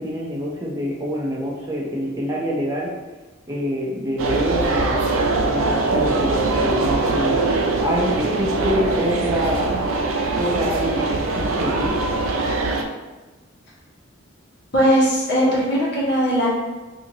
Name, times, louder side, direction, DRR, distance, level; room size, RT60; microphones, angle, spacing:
voice 1, 0.0-2.9 3.5-5.1 5.4-7.4 7.8-9.8 10.4-12.0, equal, 15° right, -4 dB, 0.5 m, -25 dB
sound 1, 4.2-12.8, right 3 dB, 75° right, 0.4 m, -22 dB
voice 2, 14.7-16.5, equal, 60° left, -6 dB, 1.3 m, -19 dB
4.3 x 2.8 x 2.7 m, 1.2 s
head